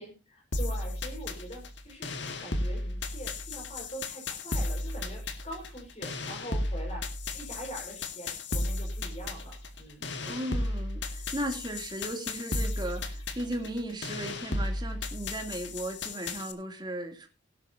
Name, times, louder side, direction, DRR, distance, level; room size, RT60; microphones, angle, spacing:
voice 1, 0.0-2.1 2.4-7.0 7.3-10.2, equal, 35° left, 2 dB, 4.8 m, -43 dB
sound 1, 0.5-16.5, left 2 dB, 60° left, 1.9 m, -34 dB
voice 2, 10.2-17.3, right 1 dB, 20° right, 4 dB, 2.6 m, -36 dB
18.5 x 11.5 x 2.7 m, 0.30 s
head